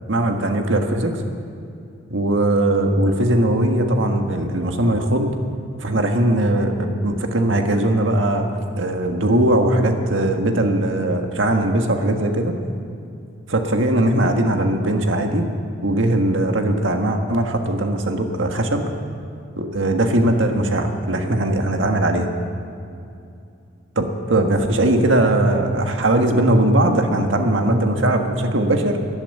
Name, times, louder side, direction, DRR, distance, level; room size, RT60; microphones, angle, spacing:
voice 1, 0.1-1.2 2.1-5.4 5.8-8.5 8.8-12.5 13.5-15.4 15.8-18.8 19.6-22.3 23.9-29.0, right 1 dB, 90° right, 4 dB, 1.6 m, -19 dB
13.0 x 11.5 x 9.0 m, 2.6 s
head